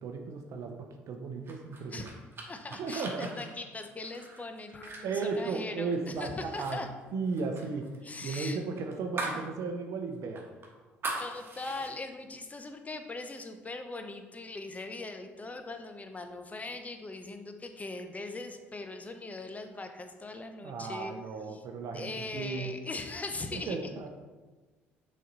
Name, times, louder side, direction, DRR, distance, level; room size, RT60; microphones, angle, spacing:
voice 1, 0.0-2.1 2.7-3.3 5.0-6.8 7.1-7.9 8.2-10.4 20.6-22.7 23.5-24.1, right 4 dB, 60° right, 4 dB, 0.7 m, -35 dB
sound 1, 1.5-6.1 6.4-6.8 7.0-9.5 9.8-9.9 10.3-11.9, right 3 dB, 40° right, 1.4 m, -40 dB
voice 2, 2.5-6.9 8.0-8.6 11.2-21.1 21.5-21.6 21.9-24.1, left 3 dB, 25° left, 7 dB, 0.8 m, -40 dB
6.4 x 4.3 x 3.9 m, 1.3 s
hypercardioid pair, 55°, 6 cm